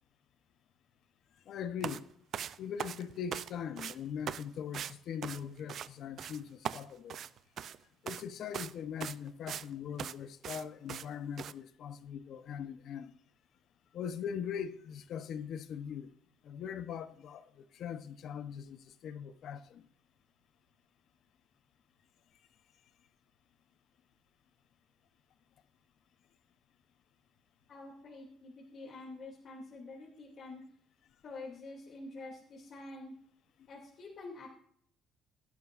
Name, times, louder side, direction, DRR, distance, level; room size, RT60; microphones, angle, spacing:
voice 1, 1.5-2.0 2.6-7.2 8.0-13.1 13.9-16.1 16.4-19.8, left 8 dB, 55° left, 0.9 m, -41 dB
sound 1, 1.8-2.0 2.3-3.5 3.8-4.0 4.3-4.4 4.7-4.9 5.2-5.9 6.2-6.4 6.6-7.8 8.1-8.2 8.5-8.7 9.0-9.7 10.0-10.1 10.4-10.6 10.9-11.1 11.4-11.5, right 9 dB, 50° right, 0.5 m, -40 dB
voice 2, 27.7-30.6 31.2-33.1 33.7-34.5, left 2 dB, 40° left, 2.7 m, -47 dB
17.0 x 11.5 x 2.6 m
cardioid pair, 150°, 0 cm